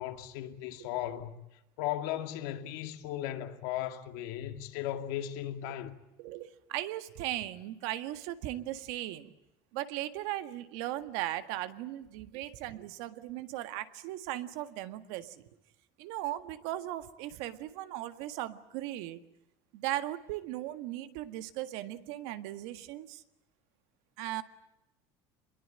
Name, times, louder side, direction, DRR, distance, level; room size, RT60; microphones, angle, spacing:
voice 1, 0.0-1.3 1.8-5.9, left 12 dB, 80° left, 2.4 m, -36 dB
voice 2, 6.2-9.3 9.7-15.4 16.0-19.2 19.7-23.2 24.2-24.4, right 14 dB, 75° right, 1.7 m, -37 dB
26.0 x 22.0 x 8.8 m
cardioid pair, 155°, 9 cm